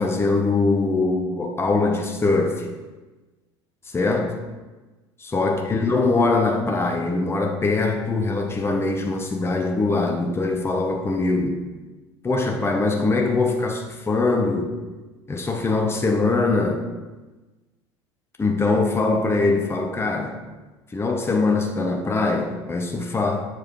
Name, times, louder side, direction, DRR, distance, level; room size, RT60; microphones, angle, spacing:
voice 1, 0.0-2.7 3.9-4.3 5.3-11.6 12.2-14.7 15.3-16.8 18.4-20.4 20.9-23.5, left 3 dB, 15° left, 3 dB, 0.9 m, -22 dB
7.2 x 4.8 x 4.7 m, 1.2 s
figure-of-eight pair, 70°, 15 cm